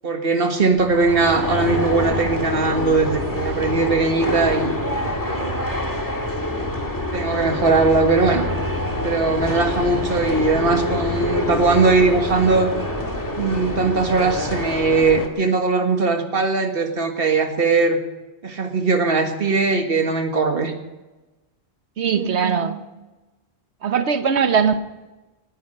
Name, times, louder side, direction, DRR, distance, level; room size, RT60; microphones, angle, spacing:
voice 1, 0.0-4.7 5.0-5.5 7.1-8.5 9.0-12.7 13.4-18.0 18.4-20.7 22.1-22.7, right 3 dB, 55° right, 5 dB, 1.8 m, -20 dB
sound 1, 0.7-15.3, left 1 dB, 15° left, 1.9 m, -26 dB
voice 2, 22.0-22.8 23.8-24.8, right 6 dB, 75° right, 10 dB, 1.3 m, -20 dB
19.0 x 10.5 x 6.6 m, 1.1 s
omnidirectional pair, 1.1 m